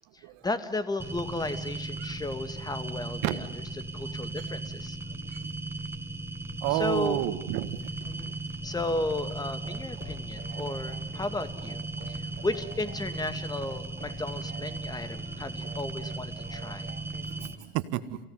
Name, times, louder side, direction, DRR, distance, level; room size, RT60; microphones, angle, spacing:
voice 1, 0.1-3.5 3.8-5.0 6.7-7.2 8.1-8.3 8.6-11.8 12.1-16.9, left 2 dB, 15° left, 11 dB, 2.4 m, -34 dB
sound 1, 1.0-17.6, right 2 dB, 10° right, 2.3 m, -37 dB
voice 2, 6.6-7.8 17.4-18.2, right 14 dB, 65° right, 12 dB, 1.8 m, -30 dB
sound 2, 8.0-15.9, left 7 dB, 70° left, 7.4 m, -53 dB
sound 3, 9.6-17.6, right 7 dB, 30° right, 3.4 m, -50 dB
30.0 x 17.0 x 9.7 m, 1.1 s
supercardioid pair, 95°, 29 cm